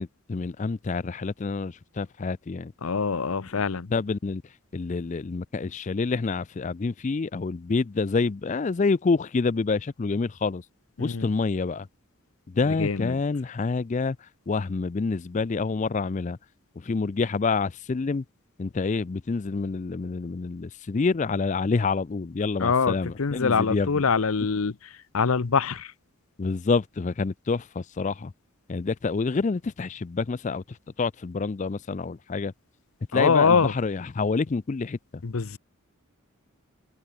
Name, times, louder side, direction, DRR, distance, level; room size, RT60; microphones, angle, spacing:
voice 1, 0.0-2.7 3.9-4.4 4.7-10.6 11.0-11.9 12.5-14.2 14.5-16.4 16.8-18.2 18.6-24.0 26.4-28.3 28.7-32.5 33.1-35.2, left 4 dB, 35° left, 0.4 m, -27 dB
voice 2, 2.8-3.9 11.0-11.3 12.6-13.2 22.6-24.8 25.1-25.9 33.1-33.7 35.2-35.6, left 5 dB, 75° left, 0.7 m, -24 dB
head